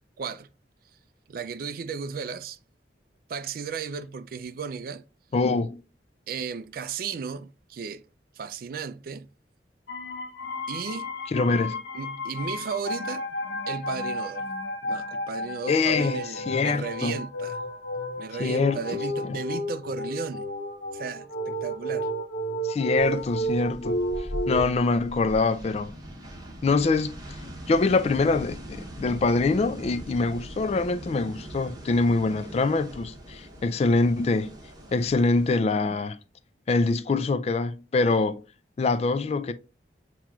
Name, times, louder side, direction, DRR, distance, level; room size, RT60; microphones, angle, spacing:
voice 1, 0.2-0.5 1.3-2.6 3.3-5.0 6.3-8.0 8.4-9.3 10.7-11.1 11.9-13.2 13.7-14.5 14.8-17.6 18.2-20.5 20.9-22.1, right 6 dB, 55° right, 0.3 m, -35 dB
voice 2, 5.3-5.8 11.3-11.8 15.7-17.2 18.4-19.4 22.6-24.0 24.5-25.9 26.6-27.1 27.7-34.5 34.9-36.2 36.7-38.4 38.8-39.5, left 3 dB, 35° left, 0.3 m, -24 dB
sound 1, 9.9-24.6, equal, 85° left, 0.7 m, -32 dB
sound 2, 23.0-35.6, equal, 20° right, 0.9 m, -41 dB
7.4 x 2.9 x 2.3 m
head